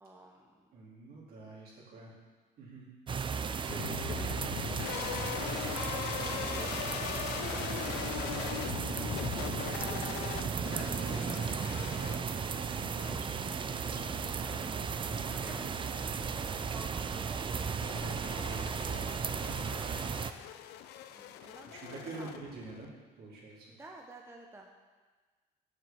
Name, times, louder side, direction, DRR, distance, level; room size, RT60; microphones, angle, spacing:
voice 1, 0.0-0.8 3.8-4.4 6.4-19.8 20.2-22.5 23.7-24.8, right 2 dB, 15° right, 1 dB, 0.9 m, -54 dB
voice 2, 0.7-2.2 2.6-2.9 3.6-5.2 15.1-15.5 19.2-19.7 21.0-23.7, right 3 dB, 65° right, -6 dB, 3.8 m, -48 dB
sound 1, 3.1-20.3, right 6 dB, 30° right, 0.5 m, -35 dB
sound 2, 3.7-22.9, left 11 dB, 80° left, 0.5 m, -41 dB
7.8 x 6.9 x 7.2 m, 1.4 s
cardioid pair, 110°, 17 cm